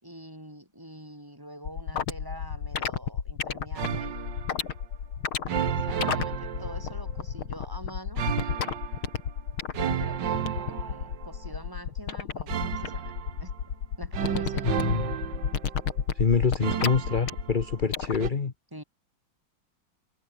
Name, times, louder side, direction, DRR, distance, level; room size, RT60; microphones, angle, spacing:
voice 1, 0.0-4.1 5.7-8.2 10.0-13.6 14.0-14.9 18.7-18.8, equal, 10° right, 5.4 m, -45 dB
sound 1, 1.6-18.3, left 7 dB, 90° left, 2.9 m, -32 dB
sound 2, 3.8-4.6 5.5-7.2 8.2-9.2 9.7-11.5 12.5-13.7 14.1-16.0 16.6-17.9 18.2-18.3, right 9 dB, 60° right, 1.9 m, -32 dB
voice 2, 14.6-15.1 16.1-18.5, left 5 dB, 30° left, 1.0 m, -26 dB
omnidirectional pair, 2.2 m